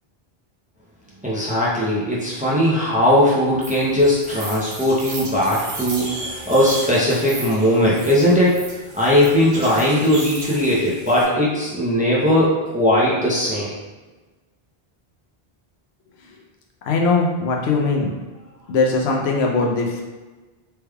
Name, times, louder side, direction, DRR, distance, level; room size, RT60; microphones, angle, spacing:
voice 1, 1.2-8.6 8.9-13.7, left 1 dB, 10° right, -7 dB, 0.5 m, -19 dB
sound 1, 3.6-11.2, right 2 dB, 90° right, 1.0 m, -34 dB
voice 2, 16.9-18.1 18.7-20.0, left 3 dB, 90° left, 0 dB, 0.9 m, -20 dB
3.3 x 3.2 x 2.2 m, 1.2 s
omnidirectional pair, 1.0 m